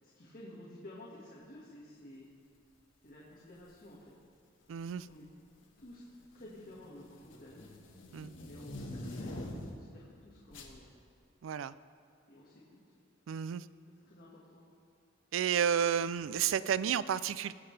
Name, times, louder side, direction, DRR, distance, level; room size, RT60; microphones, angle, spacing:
voice 1, 0.0-2.3 3.0-4.1 5.1-5.2 5.8-6.0 6.3-7.7 8.4-10.9 12.3-12.6 13.9-14.6, left 1 dB, 50° left, -7 dB, 1.8 m, -52 dB
sound 1, 3.6-3.9 4.8-5.3 5.6-9.9 10.5-10.8, left 1 dB, 80° left, 1.4 m, -45 dB
voice 2, 4.7-5.1 8.1-8.3 11.4-11.7 13.3-13.7 15.3-17.5, right 8 dB, 85° right, 16 dB, 0.3 m, -31 dB
21.5 x 7.6 x 3.3 m, 2.2 s
head